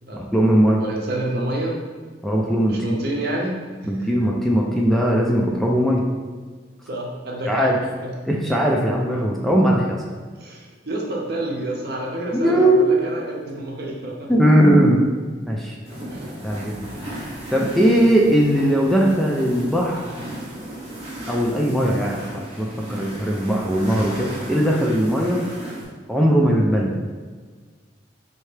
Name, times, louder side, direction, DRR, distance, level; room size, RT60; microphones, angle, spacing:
voice 1, 0.1-0.8 2.2-3.0 3.9-6.0 7.5-7.7 8.2-10.0 12.3-12.8 14.3-15.0 15.5-15.8 16.4-16.9 17.5-20.1 21.3-25.4 26.1-26.9, equal, ahead, -2 dB, 0.4 m, -19 dB
voice 2, 0.8-1.7 2.7-3.6 4.0-4.1 6.9-7.7 8.0-8.1 10.4-14.3 16.1-16.3, right 1 dB, 60° right, -1 dB, 0.7 m, -28 dB
sound 1, 15.9-25.9, right 1 dB, 35° right, 1.0 m, -35 dB
4.4 x 2.8 x 3.2 m, 1.5 s
head